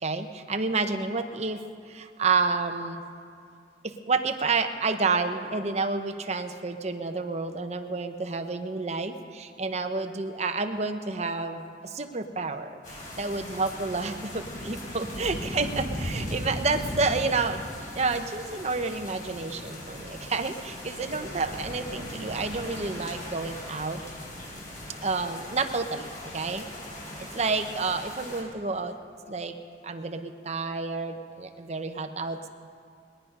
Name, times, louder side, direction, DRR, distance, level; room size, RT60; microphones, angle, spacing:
voice 1, 0.0-1.6 1.9-3.0 3.8-12.8 13.2-17.6 17.9-24.0 25.0-26.1 26.3-26.7 27.2-29.0 29.3-29.5 29.8-32.5, right 4 dB, 40° right, 7 dB, 0.8 m, -29 dB
sound 1, 12.8-28.4, left 1 dB, 50° left, 4.8 m, -38 dB
21.0 x 10.0 x 5.4 m, 2.3 s
head